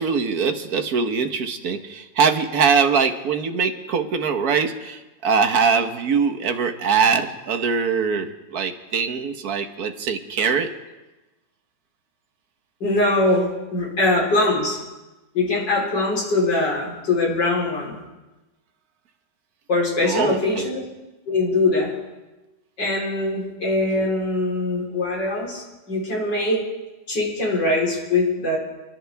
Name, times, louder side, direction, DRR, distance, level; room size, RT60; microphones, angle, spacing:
voice 1, 0.0-10.7 20.0-20.7, right 5 dB, 55° right, 6 dB, 1.6 m, -22 dB
voice 2, 12.8-14.8 15.3-18.0 19.7-20.8 21.3-21.9 22.8-26.6 27.1-28.6, left 2 dB, 70° left, -3 dB, 4.5 m, -22 dB
29.5 x 11.0 x 3.5 m, 1.1 s
omnidirectional pair, 2.0 m